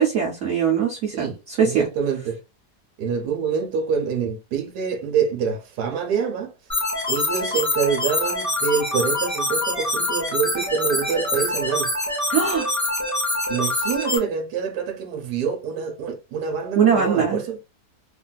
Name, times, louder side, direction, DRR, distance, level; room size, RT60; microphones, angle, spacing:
voice 1, 0.0-1.9 12.3-12.7 16.7-17.4, right 7 dB, 60° right, 0.9 m, -21 dB
voice 2, 1.6-2.4 3.0-6.5 7.1-11.9 13.5-17.6, right 6 dB, 75° right, 1.3 m, -26 dB
sound 1, 6.7-14.2, left 1 dB, 20° left, 0.5 m, -25 dB
3.2 x 2.5 x 2.2 m
omnidirectional pair, 1.8 m